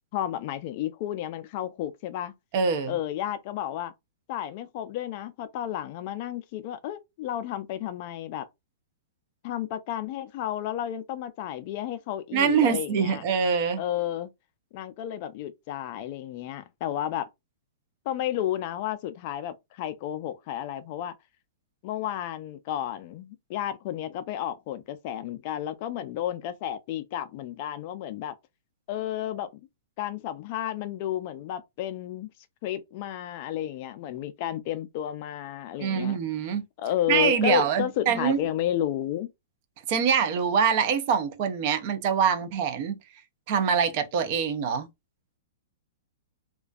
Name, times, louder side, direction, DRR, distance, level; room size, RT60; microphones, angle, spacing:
voice 1, 0.1-2.3 2.9-3.9 4.3-8.5 9.4-13.2 13.8-14.3 14.7-17.3 18.1-21.1 21.8-28.3 28.9-29.6 30.0-32.3 32.6-36.2 36.8-39.3, left 11 dB, 40° left, 0.3 m, -32 dB
voice 2, 2.5-3.0 12.3-13.8 35.8-36.6 37.1-38.4 39.9-43.0 43.5-44.9, right 7 dB, 45° right, 0.5 m, -24 dB
2.4 x 2.2 x 2.3 m
hypercardioid pair, 150°, 0 cm